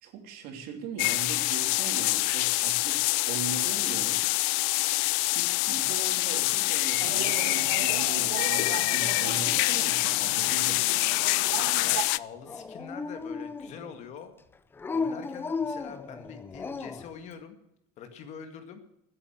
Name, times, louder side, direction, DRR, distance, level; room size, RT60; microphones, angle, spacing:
voice 1, 0.0-4.2 5.3-10.8, right 5 dB, 55° right, 5 dB, 3.1 m, -40 dB
sound 1, 1.0-12.2, left 23 dB, 65° left, 0.5 m, -26 dB
sound 2, 7.0-12.0, right 12 dB, 90° right, 1.5 m, -38 dB
voice 2, 11.8-14.3 14.9-17.6 18.0-18.8, left 7 dB, 40° left, 8 dB, 2.0 m, -44 dB
Dog, 12.5-14.0 14.8-17.1, left 4 dB, 10° left, 0.6 m, -34 dB
13.0 x 10.5 x 8.7 m, 0.80 s
cardioid pair, 160°, 19 cm